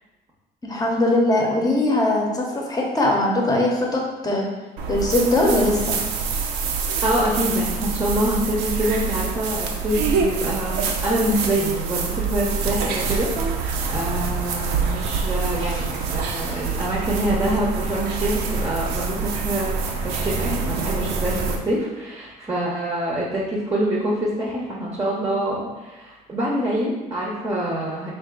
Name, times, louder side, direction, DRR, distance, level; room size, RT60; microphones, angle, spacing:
voice 1, 0.6-4.5 4.9-6.0, left 1 dB, 20° left, -1 dB, 0.8 m, -21 dB
sound 1, 4.8-21.6, right 5 dB, 85° right, 0.5 m, -26 dB
voice 2, 7.0-13.6 13.9-28.1, right 1 dB, 20° right, -3 dB, 0.7 m, -25 dB
3.6 x 2.6 x 3.7 m, 1.1 s
cardioid pair, 110°, 17 cm